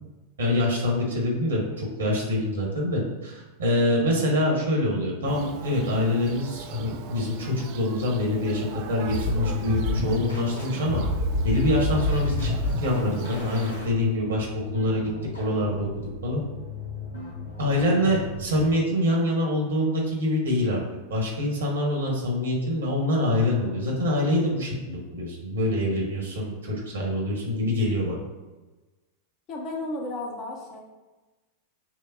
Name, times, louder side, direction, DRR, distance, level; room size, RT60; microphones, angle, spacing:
voice 1, 0.4-11.0 11.4-12.5 12.8-14.5 14.7-15.1 15.4-16.4 17.6-20.8 21.1-28.2, left 1 dB, 65° right, -2 dB, 1.1 m, -25 dB
Thunder, 5.3-13.8, right 6 dB, 45° right, 0.3 m, -41 dB
sound 1, 9.1-18.8, left 2 dB, 75° left, 0.9 m, -30 dB
voice 2, 29.5-30.8, left 2 dB, 35° left, 0 dB, 0.7 m, -33 dB
5.8 x 2.1 x 2.7 m, 1.2 s
figure-of-eight pair, 90°, 0 cm